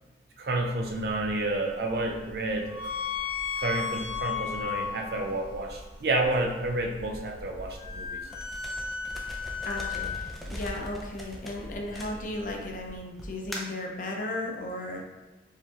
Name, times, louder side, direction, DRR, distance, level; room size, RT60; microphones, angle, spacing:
voice 1, 0.4-2.7 3.6-8.2, right 2 dB, 60° right, 2 dB, 0.6 m, -30 dB
sound 1, 0.8-13.0, left 6 dB, 30° left, 1.4 m, -37 dB
sound 2, 8.3-12.6 13.2-13.9, equal, ahead, 0.4 m, -41 dB
voice 2, 9.6-15.1, left 1 dB, 45° left, 1 dB, 0.6 m, -35 dB
4.6 x 3.5 x 2.9 m, 1.1 s
head